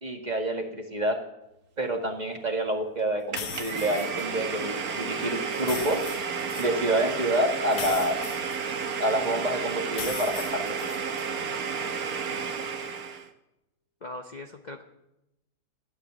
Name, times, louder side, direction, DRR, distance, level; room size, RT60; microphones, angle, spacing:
voice 1, 0.0-1.2 1.8-6.0 6.6-8.2 9.0-10.8, right 1 dB, 25° right, 3 dB, 1.9 m, -28 dB
Domestic sounds home sounds, 3.3-13.3, right 5 dB, 65° right, 1.7 m, -32 dB
sound 1, 3.4-4.3 5.5-6.7 7.7-9.1 9.9-11.3, left 8 dB, 85° left, 1.6 m, -39 dB
voice 2, 14.0-14.8, left 2 dB, 35° left, 4 dB, 0.9 m, -40 dB
15.5 x 11.5 x 7.5 m, 0.89 s
omnidirectional pair, 1.7 m